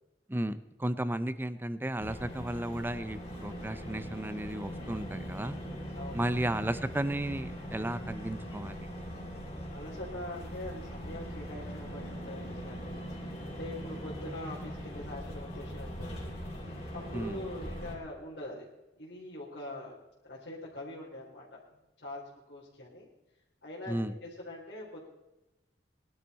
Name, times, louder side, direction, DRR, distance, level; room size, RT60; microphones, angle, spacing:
voice 1, 0.3-5.6 6.1-8.9 17.1-17.4 23.9-24.1, right 1 dB, 10° right, 13 dB, 0.6 m, -34 dB
sound 1, 2.0-18.0, equal, 35° left, 3.6 m, -41 dB
voice 2, 5.9-6.4 9.7-13.1 13.4-16.3 16.9-18.7 19.0-19.9 20.3-23.1 23.6-25.1, left 1 dB, 85° left, -6 dB, 3.7 m, -43 dB
20.5 x 12.0 x 4.2 m, 0.99 s
head